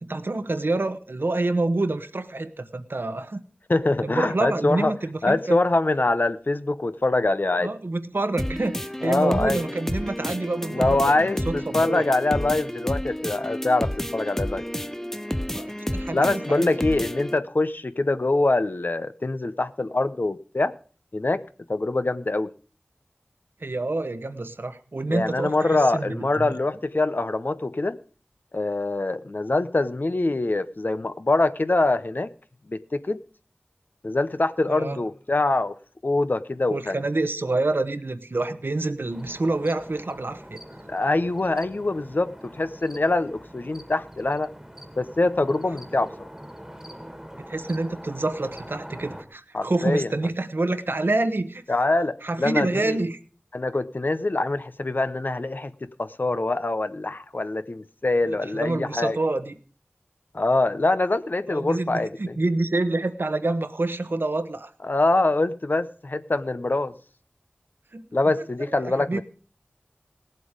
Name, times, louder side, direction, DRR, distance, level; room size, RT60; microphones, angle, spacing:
voice 1, 0.0-3.4 4.0-5.6 7.6-12.0 15.5-16.7 23.6-26.6 34.7-35.0 36.7-40.6 47.4-51.6 52.2-53.2 58.4-59.6 61.5-64.7 67.9-68.1 68.7-69.2, right 2 dB, 70° right, 1.1 m, -27 dB
voice 2, 3.7-4.9 5.2-7.7 9.0-9.6 10.7-14.6 16.1-20.7 21.1-21.4 21.7-22.5 25.1-28.0 28.5-32.3 32.7-33.2 34.0-35.7 36.0-37.0 40.9-44.5 45.0-46.3 49.5-50.1 51.7-53.0 53.5-59.2 60.3-62.4 64.8-66.9 68.1-69.2, left 2 dB, 55° left, 0.7 m, -24 dB
sound 1, 8.4-17.4, equal, 10° left, 0.6 m, -30 dB
sound 2, 39.1-49.2, equal, 10° right, 1.7 m, -43 dB
17.5 x 7.7 x 5.1 m
wide cardioid pair, 55°, 4 cm